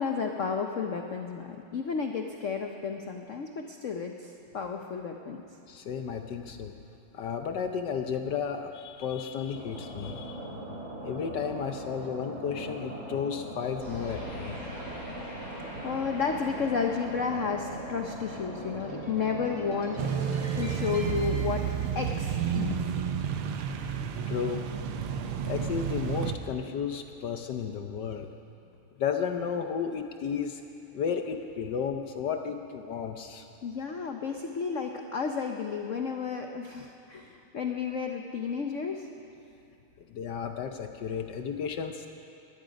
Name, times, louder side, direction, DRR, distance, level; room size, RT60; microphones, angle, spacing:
voice 1, 0.0-5.4 15.8-20.0 20.6-21.6 21.9-22.8 33.6-39.1, left 6 dB, 80° left, 4 dB, 0.6 m, -32 dB
voice 2, 5.7-6.7 7.1-10.4 11.0-14.6 23.8-24.0 24.3-24.7 25.5-28.3 29.0-30.6 30.9-33.5 40.1-42.1, left 7 dB, 65° left, 6 dB, 1.2 m, -33 dB
sound 1, 9.5-20.0, right 1 dB, 35° right, 2.5 m, -40 dB
sound 2, 13.8-22.3, equal, 45° left, 4.8 m, -44 dB
sound 3, 20.0-26.4, right 8 dB, 80° right, 1.7 m, -31 dB
19.5 x 13.0 x 5.2 m, 2.7 s
omnidirectional pair, 2.4 m